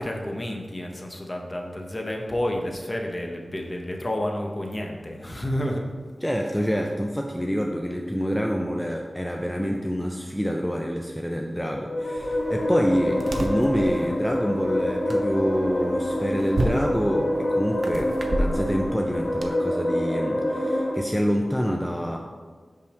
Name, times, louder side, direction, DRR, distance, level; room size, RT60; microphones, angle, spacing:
voice 1, 0.0-5.8, left 1 dB, 30° left, 2 dB, 0.8 m, -30 dB
voice 2, 6.2-22.2, equal, 5° left, 1 dB, 0.4 m, -27 dB
sound 1, 11.5-20.9, left 1 dB, 55° left, 0.9 m, -26 dB
Fridge Door Opening and Closing, 12.2-19.5, right 1 dB, 70° right, 0.5 m, -32 dB
5.4 x 5.3 x 3.4 m, 1.5 s
wide cardioid pair, 80°, 0 cm